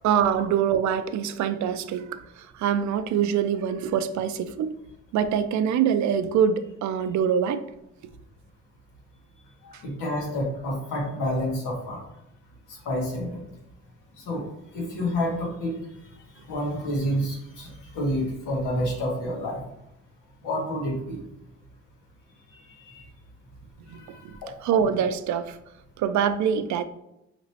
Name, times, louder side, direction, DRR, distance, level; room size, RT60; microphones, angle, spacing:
voice 1, 0.0-4.7 5.1-7.6 23.9-24.0 24.2-24.3 24.6-25.6 26.0-26.8, right 8 dB, 70° right, 11 dB, 0.5 m, -24 dB
voice 2, 9.6-12.0 12.7-13.4 14.2-14.4 14.7-15.8 16.5-19.6 20.4-21.2 22.9-23.0 23.9-24.5, equal, 90° left, -2 dB, 1.5 m, -29 dB
5.1 x 2.9 x 2.8 m, 0.85 s
cardioid pair, 90°, 30 cm